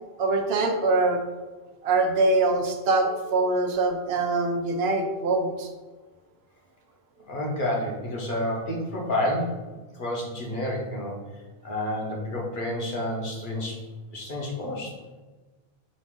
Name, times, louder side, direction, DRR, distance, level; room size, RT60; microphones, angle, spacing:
voice 1, 0.2-1.2 1.8-5.7, right 2 dB, 75° right, 5 dB, 0.8 m, -23 dB
voice 2, 7.3-9.6 9.9-13.8 14.1-14.9, left 1 dB, 55° left, -2 dB, 1.0 m, -30 dB
5.1 x 2.6 x 3.6 m, 1.3 s
omnidirectional pair, 1.1 m